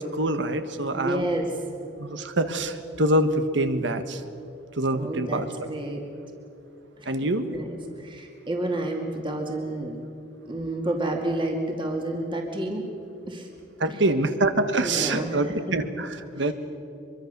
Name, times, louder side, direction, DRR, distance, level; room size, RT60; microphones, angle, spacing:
voice 1, 0.0-1.3 2.0-4.2 4.8-5.7 7.1-7.5 13.8-16.5, right 1 dB, 70° right, 9 dB, 1.5 m, -25 dB
voice 2, 1.0-1.5 4.9-6.0 7.0-7.1 7.5-10.0 10.5-12.8 13.3-13.5 13.8-14.0 14.8-15.7, right 1 dB, 25° right, 1 dB, 2.4 m, -30 dB
24.0 x 23.5 x 6.8 m, 2.8 s
head